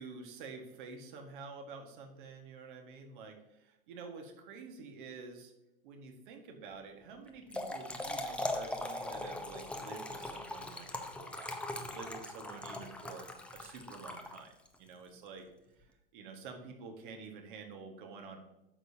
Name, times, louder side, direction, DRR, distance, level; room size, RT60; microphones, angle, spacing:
voice 1, 0.0-5.5 5.8-13.3 13.5-14.5 14.8-15.5 15.8-15.9 16.1-18.4, right 4 dB, 55° right, 4 dB, 1.8 m, -49 dB
Trickle dribble / Fill (with liquid), 7.3-14.7, left 1 dB, 5° left, 0.8 m, -40 dB
9.8 x 6.6 x 2.9 m, 0.94 s
hypercardioid pair, 100°, 29 cm